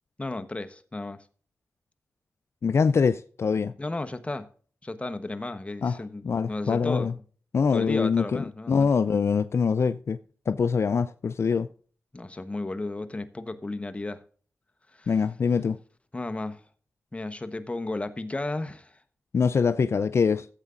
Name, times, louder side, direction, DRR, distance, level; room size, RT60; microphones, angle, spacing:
voice 1, 0.2-1.2 3.8-4.5 4.8-7.2 7.7-8.9 12.1-14.2 14.9-15.1 16.1-16.6 17.1-19.0, left 2 dB, 25° left, 1.0 m, -34 dB
voice 2, 2.6-3.7 5.8-6.0 6.2-7.1 7.5-10.2 10.5-11.7 15.1-15.8 19.3-20.5, left 5 dB, 60° left, 0.4 m, -24 dB
15.0 x 8.1 x 2.5 m
cardioid pair, 70°, 5 cm